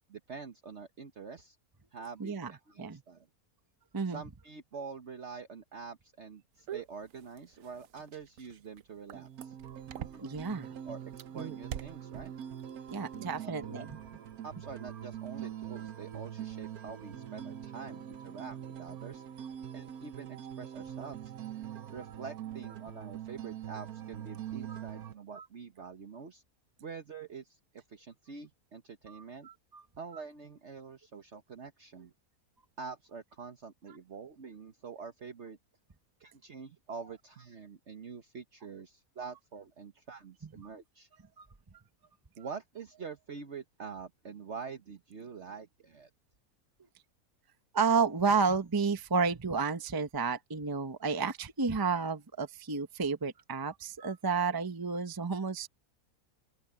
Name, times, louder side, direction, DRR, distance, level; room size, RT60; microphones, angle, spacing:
voice 1, 0.0-1.6 1.9-3.3 4.1-9.6 10.0-11.0 11.3-12.3 13.4-13.9 14.4-19.2 19.7-21.3 21.9-26.4 26.8-29.5 30.0-32.1 32.8-35.6 36.2-41.1 42.4-46.1, right 5 dB, 50° right, 1.5 m, -46 dB
voice 2, 2.2-2.5 2.8-3.0 3.9-4.2 9.7-9.8 10.2-10.7 12.9-13.9 24.7-24.8 25.4-25.5 29.1-29.8 41.4-41.5 47.7-55.7, right 5 dB, 20° right, 0.8 m, -31 dB
sound 1, 6.7-10.6 11.1-12.6 12.9-13.3, right 10 dB, 70° right, 1.1 m, -43 dB
sound 2, 9.1-25.1, right 10 dB, 85° right, 1.4 m, -43 dB
open air
omnidirectional pair, 1.5 m